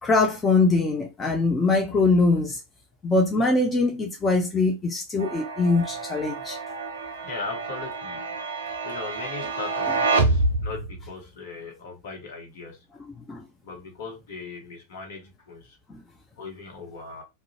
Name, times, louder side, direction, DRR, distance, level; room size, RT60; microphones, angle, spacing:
voice 1, 0.0-2.6 3.0-6.6 13.0-13.4 15.9-16.0, left 3 dB, 15° left, 0.5 m, -22 dB
sound 1, 5.2-11.1, right 3 dB, 70° right, 0.4 m, -28 dB
voice 2, 7.2-8.3 8.8-12.8 13.6-15.8 16.4-17.2, left 4 dB, 55° left, 1.0 m, -38 dB
2.5 x 2.1 x 2.8 m
figure-of-eight pair, 90°, 0 cm